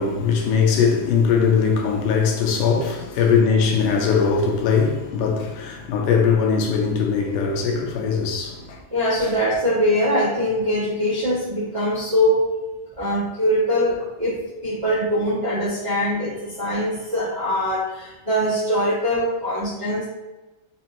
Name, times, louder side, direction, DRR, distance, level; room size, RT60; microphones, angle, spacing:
voice 1, 0.0-8.8, left 6 dB, 90° left, 2.1 m, -20 dB
voice 2, 8.9-12.5 12.9-20.1, equal, 50° right, 0.5 m, -22 dB
5.1 x 2.7 x 2.8 m
omnidirectional pair, 3.6 m